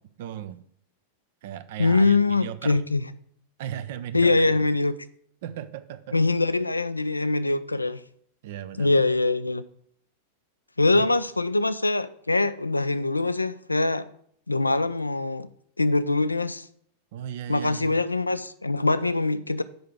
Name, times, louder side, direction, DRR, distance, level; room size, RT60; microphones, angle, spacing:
voice 1, 0.2-0.6 1.4-2.8 3.6-4.7 5.4-6.2 8.4-9.0 10.9-11.1 17.1-18.0, right 10 dB, 55° right, 0.5 m, -36 dB
voice 2, 1.8-3.0 4.1-4.9 6.1-8.0 8.8-9.6 10.8-14.1 14.5-15.5 15.8-16.7 17.5-19.6, left 3 dB, 80° left, 0.4 m, -23 dB
7.9 x 5.6 x 4.8 m
figure-of-eight pair, 90°, 0 cm